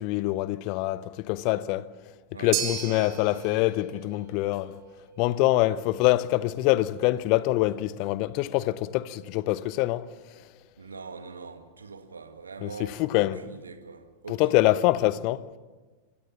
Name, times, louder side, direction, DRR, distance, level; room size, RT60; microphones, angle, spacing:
voice 1, 0.0-1.8 2.4-4.8 5.2-10.1 12.6-13.4 14.3-15.4, left 17 dB, 45° left, 0.9 m, -25 dB
voice 2, 2.3-3.7 10.8-14.8, right 4 dB, 75° right, 2.0 m, -43 dB
sound 1, 2.5-10.9, right 10 dB, 40° right, 2.6 m, -40 dB
26.0 x 23.0 x 7.3 m
figure-of-eight pair, 90°, 0 cm